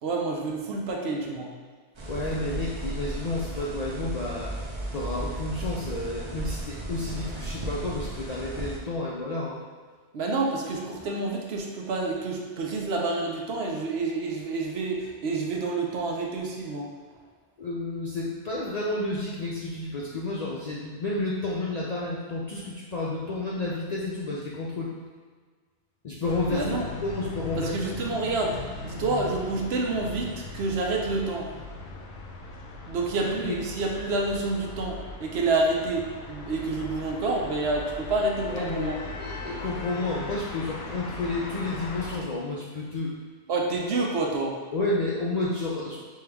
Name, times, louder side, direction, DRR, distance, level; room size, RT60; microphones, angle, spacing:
voice 1, 0.0-1.5 10.1-16.9 26.5-26.9 27.6-31.5 32.9-39.0 43.5-44.6, right 3 dB, 70° right, 0 dB, 0.9 m, -28 dB
sound 1, 1.9-8.8, right 1 dB, 40° right, 0.4 m, -35 dB
voice 2, 2.1-4.5 4.9-9.6 17.6-24.9 26.0-26.6 27.0-27.9 33.4-33.6 38.5-43.1 44.7-46.0, left 2 dB, 55° left, -5 dB, 0.4 m, -31 dB
sound 2, 26.2-42.2, left 3 dB, 70° left, 0.8 m, -39 dB
5.4 x 2.3 x 3.4 m, 1.5 s
omnidirectional pair, 1.2 m